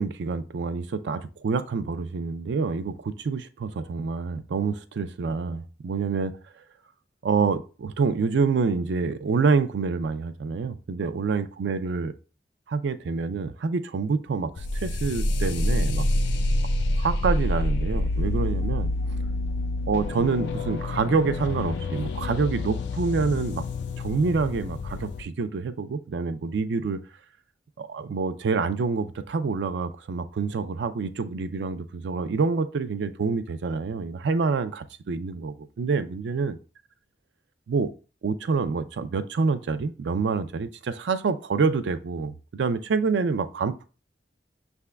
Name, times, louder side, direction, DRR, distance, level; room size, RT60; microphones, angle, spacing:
voice 1, 0.0-6.4 7.2-12.1 12.7-16.1 17.0-18.9 19.9-23.6 24.0-27.0 27.8-36.5 37.7-37.9 38.2-43.8, right 4 dB, 80° right, 0.4 m, -27 dB
sound 1, 14.6-25.2, left 2 dB, 80° left, 0.4 m, -27 dB
5.9 x 3.5 x 2.2 m
head